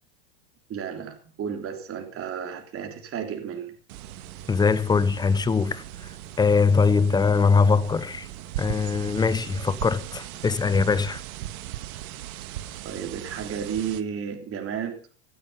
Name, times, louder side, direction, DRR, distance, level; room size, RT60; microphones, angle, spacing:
voice 1, 0.7-3.7 12.4-12.6 12.8-15.0, right 7 dB, 30° right, 3.6 m, -33 dB
sound 1, 3.9-14.0, right 13 dB, 70° right, 1.8 m, -38 dB
voice 2, 4.5-5.8 6.4-8.3 8.6-11.2, left 5 dB, 10° left, 0.6 m, -22 dB
16.5 x 12.5 x 5.7 m
supercardioid pair, 130°, 44 cm